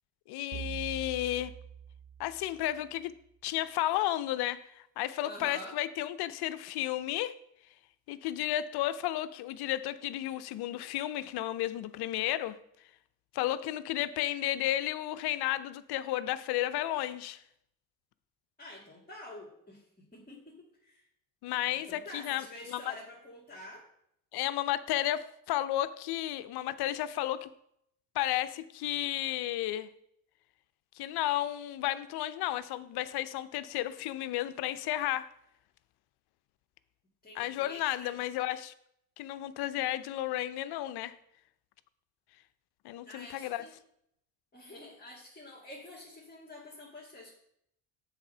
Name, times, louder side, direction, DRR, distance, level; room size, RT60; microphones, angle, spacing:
voice 1, 0.3-1.5 2.2-3.1 3.4-7.3 8.1-12.6 13.3-17.4 21.4-22.9 24.3-27.5 28.1-29.9 31.0-35.3 37.3-38.7 39.2-41.1 42.8-43.7, left 14 dB, 65° left, 14 dB, 0.6 m, -33 dB
sound 1, 0.5-3.0, right 7 dB, 40° right, 0.6 m, -44 dB
voice 2, 5.2-5.8 18.6-21.1 21.9-23.9 37.2-38.2 43.1-43.8 44.5-47.3, left 1 dB, 20° left, -3 dB, 2.1 m, -48 dB
7.2 x 4.1 x 5.5 m, 0.74 s
hypercardioid pair, 65°, 42 cm